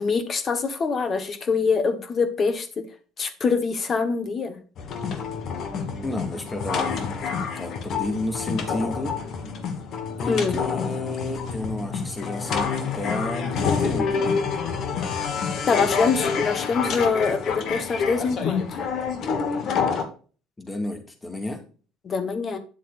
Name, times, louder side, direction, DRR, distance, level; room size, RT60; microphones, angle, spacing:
voice 1, 0.0-2.9 3.2-4.6 10.3-10.6 15.7-18.8 22.0-22.6, left 5 dB, 40° left, 1.4 m, -24 dB
sound 1, 4.8-20.0, left 5 dB, 55° left, 1.5 m, -27 dB
voice 2, 6.0-9.1 10.2-12.7 12.9-14.3 20.6-21.6, left 2 dB, 20° left, 2.2 m, -31 dB
9.4 x 7.4 x 2.6 m
hypercardioid pair, 75°, 0 cm